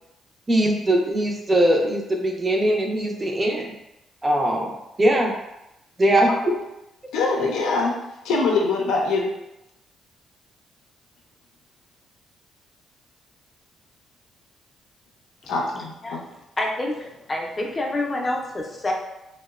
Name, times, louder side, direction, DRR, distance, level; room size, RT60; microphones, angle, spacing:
voice 1, 0.5-3.7 4.2-5.3 6.0-6.3, right 1 dB, 25° right, 1 dB, 0.5 m, -21 dB
voice 2, 7.1-7.9 8.2-9.3 15.5-16.2, left 3 dB, 90° left, -1 dB, 0.4 m, -23 dB
voice 3, 16.6-18.9, left 1 dB, 25° left, 0 dB, 0.5 m, -27 dB
2.8 x 2.1 x 2.3 m, 0.90 s
cardioid pair, 90°, 0 cm